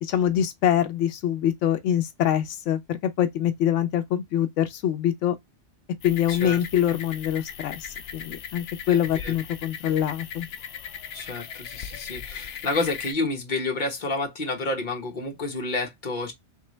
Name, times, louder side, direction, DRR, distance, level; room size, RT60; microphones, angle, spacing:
voice 1, 0.0-5.3 6.0-10.5, left 10 dB, 90° left, 1.0 m, -24 dB
sound 1, 6.0-13.1, left 8 dB, 65° left, 0.8 m, -38 dB
voice 2, 6.3-6.6 8.9-9.3 11.1-16.3, left 2 dB, 40° left, 1.3 m, -29 dB
3.7 x 3.4 x 3.1 m
omnidirectional pair, 1.2 m